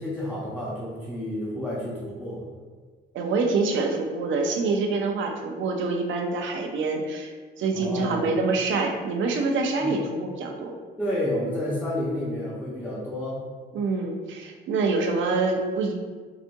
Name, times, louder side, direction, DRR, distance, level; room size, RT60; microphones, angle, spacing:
voice 1, 0.0-2.4 7.7-8.3 9.8-9.9 11.0-13.4, left 1 dB, 5° left, -9 dB, 0.9 m, -30 dB
voice 2, 3.1-7.3 7.6-10.7 13.7-15.9, right 3 dB, 75° right, 3 dB, 0.6 m, -26 dB
4.8 x 2.6 x 2.6 m, 1.5 s
cardioid pair, 90°, 20 cm